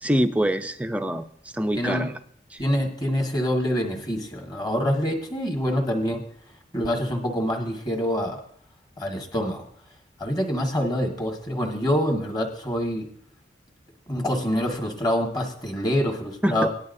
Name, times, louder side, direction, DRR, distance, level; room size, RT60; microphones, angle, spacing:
voice 1, 0.0-2.1 2.5-2.6 16.4-16.7, equal, 5° right, 8 dB, 0.5 m, -25 dB
voice 2, 1.7-2.1 2.6-6.2 6.7-8.4 9.0-9.6 10.2-13.1 14.1-16.7, equal, 20° left, 2 dB, 1.7 m, -26 dB
18.0 x 11.0 x 2.7 m, 0.62 s
head